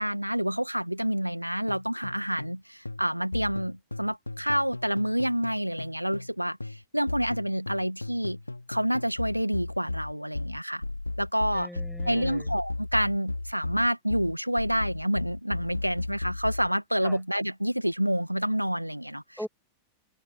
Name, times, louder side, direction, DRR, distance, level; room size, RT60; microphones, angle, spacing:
voice 1, 0.0-8.4 8.7-10.8 11.2-11.7 12.1-19.4, equal, 90° right, 2.0 m, -28 dB
sound 1, 1.7-2.6 2.9-6.3 6.6-16.7, left 2 dB, 85° left, 3.4 m, -35 dB
voice 2, 11.5-12.5 17.0-17.2 19.4-19.5, equal, ahead, 7.0 m, -40 dB
figure-of-eight pair, 90°, 0 cm